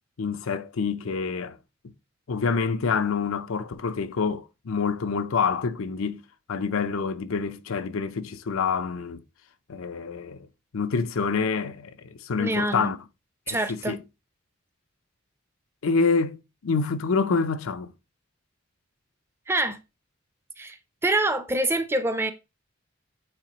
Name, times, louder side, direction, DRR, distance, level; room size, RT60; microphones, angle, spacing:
voice 1, 0.2-1.6 2.3-6.2 6.5-9.2 9.7-10.5 10.7-13.0 13.5-14.0 15.8-17.9, left 5 dB, 80° left, 0.5 m, -27 dB
voice 2, 12.4-12.9 13.5-14.0 19.5-19.8 20.6-20.8 21.0-22.3, right 2 dB, 10° right, 0.6 m, -25 dB
8.6 x 3.9 x 2.9 m
head